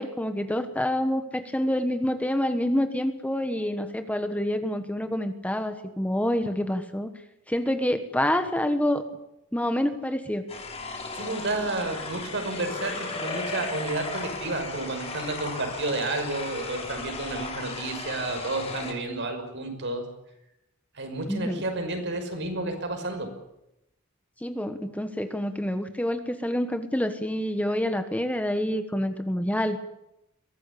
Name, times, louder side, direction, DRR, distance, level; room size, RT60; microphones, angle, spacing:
voice 1, 0.0-7.1 7.5-9.0 9.5-10.5 21.3-21.6 24.4-29.8, left 1 dB, 5° left, 8 dB, 1.3 m, -27 dB
sound 1, 10.5-18.9, left 3 dB, 30° left, 4.4 m, -36 dB
voice 2, 11.1-20.0 20.9-23.3, right 2 dB, 60° right, 6 dB, 5.7 m, -31 dB
23.0 x 17.5 x 8.6 m, 0.86 s
head